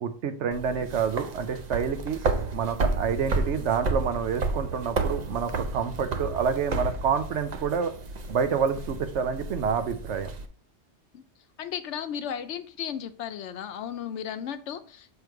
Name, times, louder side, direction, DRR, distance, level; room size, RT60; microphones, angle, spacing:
voice 1, 0.0-2.2 2.5-7.9 8.3-10.3, right 6 dB, 85° right, 9 dB, 1.1 m, -28 dB
sound 1, 0.5-10.5, right 3 dB, 45° right, 0.6 m, -31 dB
voice 2, 11.6-15.1, left 8 dB, 85° left, 9 dB, 1.0 m, -35 dB
6.9 x 3.2 x 4.6 m, 0.43 s
omnidirectional pair, 1.2 m